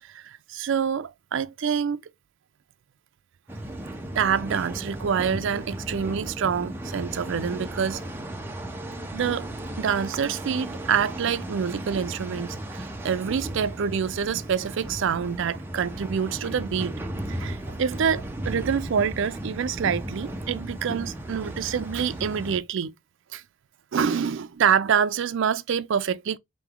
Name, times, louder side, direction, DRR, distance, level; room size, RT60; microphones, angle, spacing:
voice 1, 0.1-2.0 4.2-8.0 9.1-9.5 9.8-16.9 17.3-22.9 23.3-23.4 23.9-26.4, right 7 dB, 60° right, 0.4 m, -26 dB
sound 1, 3.5-22.6, right 1 dB, 10° right, 0.6 m, -35 dB
3.8 x 3.1 x 3.5 m
head